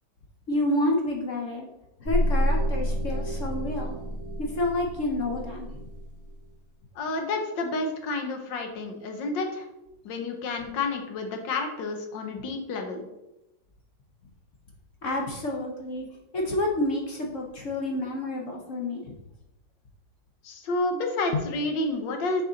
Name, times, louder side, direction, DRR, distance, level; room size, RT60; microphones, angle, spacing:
voice 1, 0.5-1.7 2.0-4.0 4.4-5.7 15.0-16.1 16.3-19.2 21.3-21.4, left 1 dB, 55° left, 0 dB, 1.0 m, -29 dB
sound 1, 2.0-6.3, equal, 15° left, 0.6 m, -29 dB
voice 2, 6.9-9.7 10.0-13.0 20.4-22.4, left 2 dB, 85° left, 5 dB, 1.6 m, -30 dB
6.5 x 4.8 x 3.9 m, 0.93 s
omnidirectional pair, 1.9 m